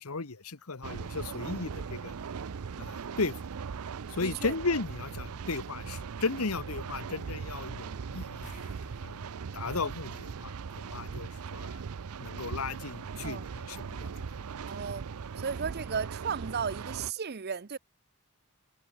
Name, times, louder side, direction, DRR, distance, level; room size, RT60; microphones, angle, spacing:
voice 1, 0.0-2.1 2.8-3.3 4.1-8.5 9.0-9.2 9.5-10.6 10.9-11.8 12.2-14.3, left 3 dB, 85° left, 1.3 m, -35 dB
sound 1, 0.8-17.1, right 6 dB, 85° right, 0.5 m, -39 dB
voice 2, 4.2-4.6 13.2-13.4 14.7-15.1 15.4-17.8, right 6 dB, 45° right, 0.7 m, -34 dB
sound 2, 8.4-11.2 11.5-11.7 14.6-14.7 15.0-15.1, left 1 dB, 35° left, 6.5 m, -55 dB
head